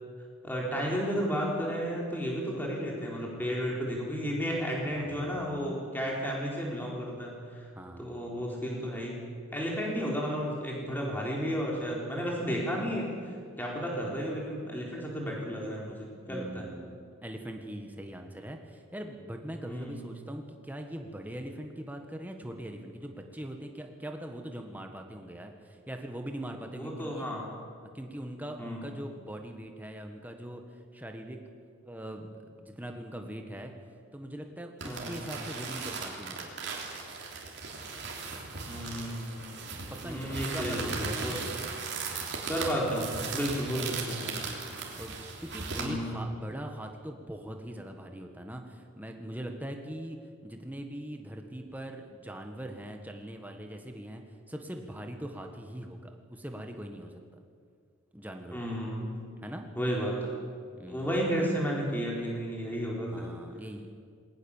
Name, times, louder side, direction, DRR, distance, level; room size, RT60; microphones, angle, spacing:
voice 1, 0.4-7.7 8.0-9.2 9.5-16.6 19.7-20.0 26.7-27.5 28.6-28.9 34.8-35.4 38.7-39.6 40.0-41.4 42.5-44.3 45.8-46.3 58.5-59.2 59.8-60.3 60.9-63.3, equal, 10° left, -2 dB, 3.9 m, -33 dB
voice 2, 4.9-5.6 7.7-8.2 16.2-27.3 27.9-31.4 31.8-33.7 34.1-36.5 39.6-41.5 43.7-44.5 45.0-54.2 54.5-57.4 58.1-58.6 59.4-59.7 60.7-61.2 63.1-63.9, right 1 dB, 10° right, 4 dB, 1.5 m, -42 dB
sound 1, 34.8-45.9, right 4 dB, 55° right, 3.3 m, -37 dB
20.0 x 19.0 x 7.3 m, 2.1 s
head